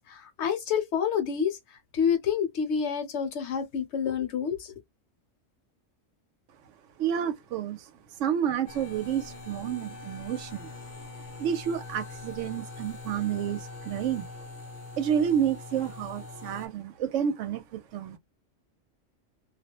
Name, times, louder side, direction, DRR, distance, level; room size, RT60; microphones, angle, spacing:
voice 1, 0.0-1.6 1.9-4.7, left 7 dB, 70° left, 1.0 m, -28 dB
voice 2, 7.0-7.9 8.2-10.9 11.4-14.3 15.0-18.2, right 8 dB, 90° right, 0.9 m, -30 dB
sound 1, 8.7-16.7, left 3 dB, 50° left, 0.6 m, -43 dB
2.3 x 2.1 x 2.8 m
omnidirectional pair, 1.2 m